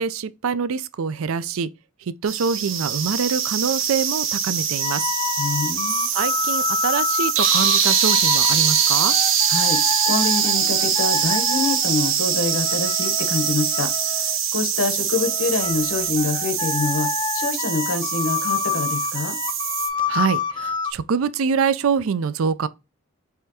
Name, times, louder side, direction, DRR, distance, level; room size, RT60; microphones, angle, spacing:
voice 1, 0.0-1.7 2.0-5.1 6.1-9.1 20.1-22.7, right 6 dB, 85° right, 0.4 m, -25 dB
sound 1, 2.3-19.9, right 8 dB, 70° right, 1.0 m, -23 dB
sound 2, 4.8-14.4 15.1-20.9, left 6 dB, 25° left, 0.4 m, -28 dB
voice 2, 5.4-6.1 9.5-9.8 10.1-19.4, left 3 dB, 80° left, 1.0 m, -26 dB
4.9 x 3.4 x 2.7 m
head